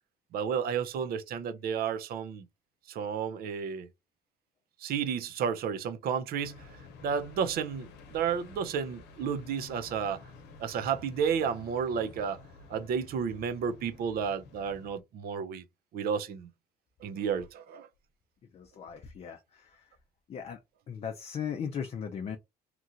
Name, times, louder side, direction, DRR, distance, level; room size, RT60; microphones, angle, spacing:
voice 1, 0.3-2.4 2.9-3.9 4.8-6.6 7.0-10.2 10.6-12.4 12.7-15.6 15.9-16.5 17.0-17.9, right 7 dB, 65° right, 0.5 m, -32 dB
sound 1, 6.4-15.0, left 4 dB, 85° left, 0.8 m, -51 dB
voice 2, 18.5-19.9 20.3-20.6 20.9-22.4, left 7 dB, 40° left, 0.5 m, -38 dB
2.9 x 2.4 x 2.7 m
cardioid pair, 110°, 17 cm